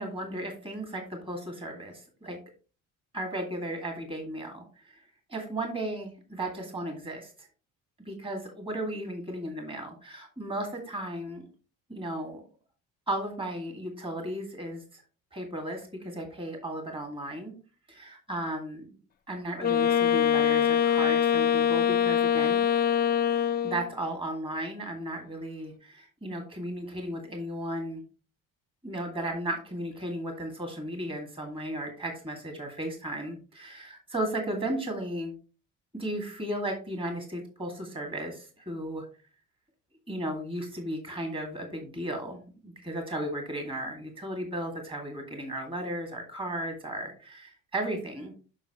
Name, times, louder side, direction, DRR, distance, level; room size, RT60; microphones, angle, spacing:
voice 1, 0.0-2.4 3.1-5.0 5.3-7.5 8.1-11.4 11.9-12.4 13.1-15.0 15.3-17.5 17.9-18.9 19.3-22.8 23.6-28.0 28.8-35.3 35.9-39.1 40.1-48.3, right 1 dB, 15° right, 3 dB, 2.1 m, -35 dB
Wind instrument woodwind instrument, 19.6-23.9, left 9 dB, 30° left, 0.6 m, -24 dB
7.0 x 5.8 x 2.9 m, 0.35 s
supercardioid pair, 90°, 33 cm